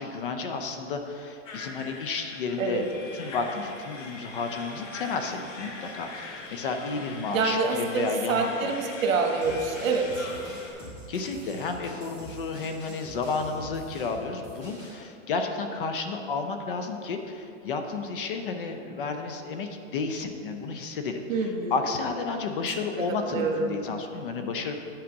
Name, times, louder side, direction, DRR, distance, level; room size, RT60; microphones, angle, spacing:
voice 1, 0.0-2.9 3.1-8.7 11.1-24.8, left 4 dB, 45° left, 6 dB, 0.7 m, -32 dB
sound 1, 1.5-10.7, left 3 dB, 75° left, 1.8 m, -42 dB
voice 2, 7.3-10.3 21.3-21.7 23.3-23.8, right 4 dB, 85° right, 3 dB, 1.3 m, -26 dB
sound 2, 9.4-15.0, right 1 dB, 15° left, 2.0 m, -45 dB
8.8 x 5.0 x 7.0 m, 2.6 s
supercardioid pair, 175°, 39 cm